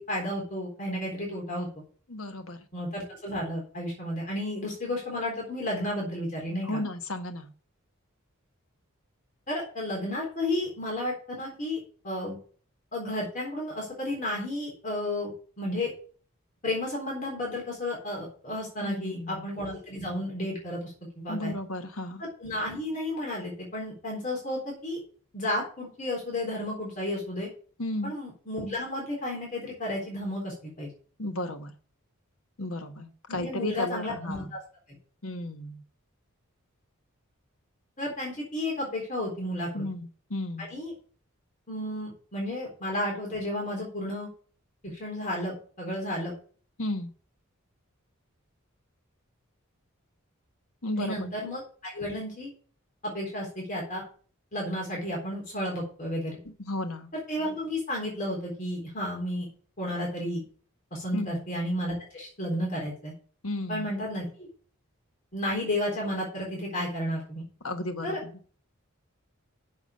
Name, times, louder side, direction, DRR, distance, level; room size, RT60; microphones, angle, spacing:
voice 1, 0.0-1.8 2.7-6.8 9.5-12.4 12.9-15.9 16.6-21.5 22.4-25.0 25.3-27.5 28.0-30.9 33.3-34.6 34.9-35.0 38.0-39.9 40.7-40.9 41.7-44.3 44.8-46.3 51.0-52.5 53.0-54.0 54.5-56.4 57.1-59.5 59.8-60.4 60.9-63.1 63.7-64.5 65.3-67.4 68.0-68.2, left 1 dB, 40° left, -2 dB, 3.9 m, -32 dB
voice 2, 2.1-2.6 6.6-7.5 18.8-19.5 21.3-22.2 27.8-28.1 31.2-31.7 32.6-34.5 35.2-35.8 39.7-40.7 46.8-47.1 50.8-51.3 56.4-57.1 61.1-61.4 63.4-63.9 67.6-68.3, left 1 dB, 75° left, 7 dB, 1.4 m, -34 dB
7.2 x 7.0 x 7.9 m, 0.43 s
head